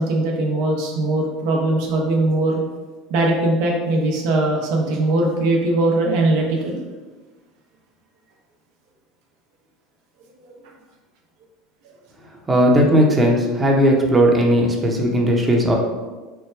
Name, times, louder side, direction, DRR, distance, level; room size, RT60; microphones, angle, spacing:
voice 1, 0.0-2.6 3.1-6.8, right 2 dB, 70° right, 0 dB, 1.0 m, -20 dB
voice 2, 12.5-15.8, equal, 20° right, 0 dB, 0.9 m, -16 dB
4.5 x 2.2 x 4.6 m, 1.3 s
hypercardioid pair, 85°, 0 cm